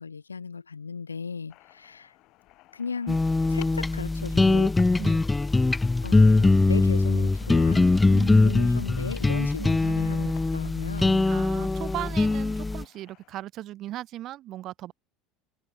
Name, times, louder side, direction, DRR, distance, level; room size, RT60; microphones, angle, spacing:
voice 1, 0.0-2.1 2.7-3.2 3.5-4.7 6.0-7.9 8.4-11.3, left 5 dB, 90° left, 1.8 m, -36 dB
sound 1, 1.5-13.4, left 19 dB, 55° left, 6.2 m, -56 dB
sound 2, 3.1-12.8, left 3 dB, 15° left, 0.6 m, -22 dB
voice 2, 8.1-8.6 9.6-10.1 11.2-14.9, right 14 dB, 50° right, 6.6 m, -37 dB
hypercardioid pair, 70°, 0 cm